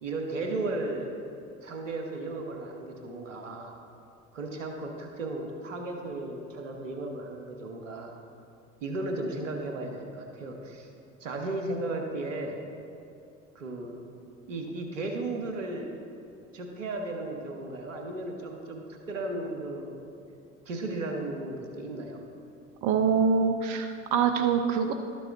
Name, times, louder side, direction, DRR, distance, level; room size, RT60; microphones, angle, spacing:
voice 1, 0.0-1.1 1.6-3.7 4.3-8.1 8.8-10.9 11.2-12.6 13.5-14.0 14.5-16.0 16.5-20.1 20.6-22.2, right 2 dB, 85° right, 3 dB, 1.1 m, -35 dB
voice 2, 22.8-24.9, right 6 dB, 50° right, 6 dB, 0.6 m, -24 dB
12.5 x 6.9 x 3.6 m, 2.5 s
hypercardioid pair, 70°, 37 cm